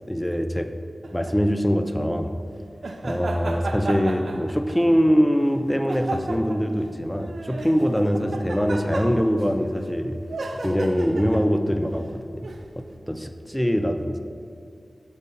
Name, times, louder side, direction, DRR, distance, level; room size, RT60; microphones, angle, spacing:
voice 1, 0.1-0.8 1.1-2.3 3.0-10.2 10.6-12.5 13.0-14.2, equal, 5° left, 7 dB, 0.3 m, -23 dB
sound 1, 1.0-1.4 2.8-4.9 5.9-6.7 7.2-9.5 10.3-11.5 12.4-12.7, right 2 dB, 75° right, 0.3 m, -33 dB
6.7 x 2.7 x 5.1 m, 2.3 s
wide cardioid pair, 90°, 0 cm